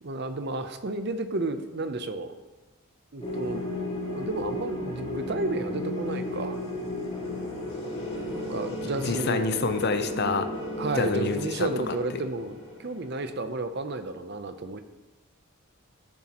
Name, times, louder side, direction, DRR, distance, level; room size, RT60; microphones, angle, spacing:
voice 1, 0.0-2.3 3.1-3.6 4.1-6.6 8.3-9.5 10.8-14.8, right 2 dB, 50° right, 9 dB, 0.6 m, -32 dB
sound 1, 3.2-13.3, left 1 dB, 25° left, 2.8 m, -34 dB
voice 2, 9.0-10.5 10.9-12.2, left 4 dB, 45° left, 9 dB, 0.6 m, -28 dB
13.5 x 7.3 x 3.0 m, 1.2 s
head